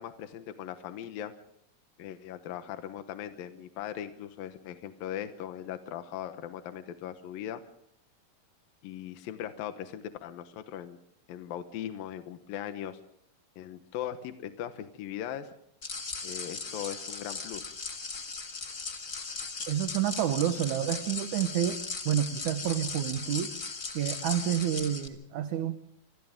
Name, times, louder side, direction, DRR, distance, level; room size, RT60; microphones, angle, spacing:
voice 1, 0.0-1.3 2.0-7.6 8.8-11.0 11.3-13.0 13.6-15.5 16.2-17.7, left 10 dB, 75° left, 8 dB, 2.9 m, -39 dB
sound 1, 15.8-25.1, left 4 dB, 45° left, 1.0 m, -38 dB
voice 2, 19.7-21.8 22.1-23.5 23.9-25.8, right 11 dB, 65° right, 8 dB, 2.3 m, -29 dB
27.5 x 26.0 x 3.7 m, 0.71 s
omnidirectional pair, 4.3 m